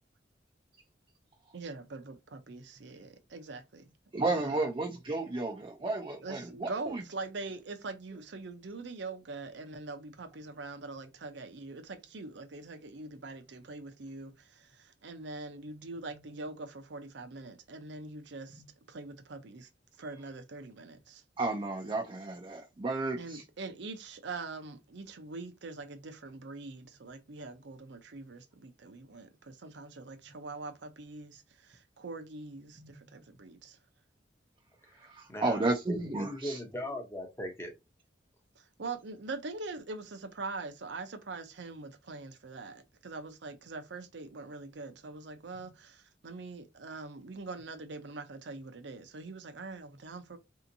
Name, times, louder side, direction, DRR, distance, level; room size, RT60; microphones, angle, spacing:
voice 1, 1.5-3.9 4.3-4.6 6.2-18.6 18.9-19.7 20.0-21.2 23.2-33.8 38.6-50.4, right 3 dB, 65° right, 0.6 m, -43 dB
voice 2, 4.1-7.0 16.1-16.2 18.5-18.7 21.4-23.4 32.8-33.2 35.0-36.6 45.6-45.7, right 2 dB, 25° right, 0.4 m, -33 dB
voice 3, 35.3-37.7, left 1 dB, 15° left, 0.8 m, -39 dB
3.4 x 2.8 x 2.6 m
head